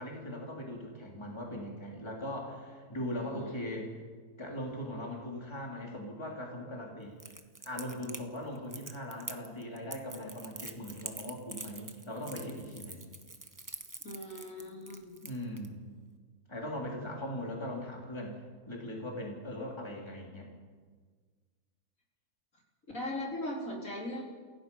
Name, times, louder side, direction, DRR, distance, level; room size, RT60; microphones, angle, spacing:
voice 1, 0.0-3.9 4.4-7.2 7.7-13.1 15.2-15.8 16.5-20.5, left 1 dB, 15° left, -1 dB, 3.4 m, -40 dB
voice 2, 3.2-3.7 14.0-15.2 22.9-24.2, left 1 dB, 60° left, -2 dB, 4.0 m, -39 dB
Crackle, 7.2-15.7, right 2 dB, 15° right, 0.9 m, -45 dB
28.5 x 16.5 x 5.5 m, 1.5 s
omnidirectional pair, 1.6 m